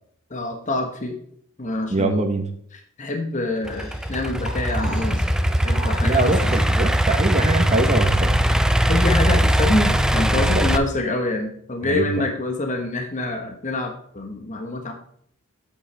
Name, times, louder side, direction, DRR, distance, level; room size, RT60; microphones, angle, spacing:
voice 1, 0.3-1.1 1.6-2.3 3.0-5.2 5.6-6.5 8.9-14.9, left 2 dB, 35° left, 4 dB, 1.2 m, -26 dB
voice 2, 1.9-2.5 6.0-8.4 10.3-10.7 11.9-12.1, right 2 dB, 30° right, 4 dB, 1.1 m, -23 dB
sound 1, 3.7-7.0, left 1 dB, 65° left, 2.5 m, -39 dB
Idling / Accelerating revving vroom, 3.7-10.8, equal, 5° right, 0.4 m, -20 dB
8.8 x 8.2 x 3.4 m, 0.64 s
head